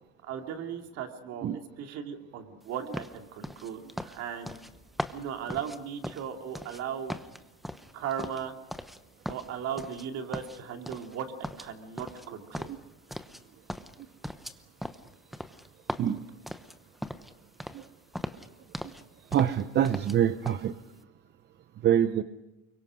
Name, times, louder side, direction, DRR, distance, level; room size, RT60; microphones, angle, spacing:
voice 1, 0.2-1.5 1.8-4.6 5.1-7.2 7.9-8.5 9.3-12.7, right 8 dB, 55° right, 5 dB, 2.7 m, -37 dB
sound 1, 2.9-6.8 7.1-9.0 9.3-10.1 10.3-11.2 11.4-13.4 13.7-17.3 17.6-17.9 18.1-19.0 19.3-20.2 20.5-20.7, equal, ahead, 0.9 m, -39 dB
voice 2, 19.3-20.7 21.8-22.2, right 10 dB, 35° right, 12 dB, 0.8 m, -25 dB
25.0 x 23.0 x 6.3 m, 1.0 s
supercardioid pair, 120°, 31 cm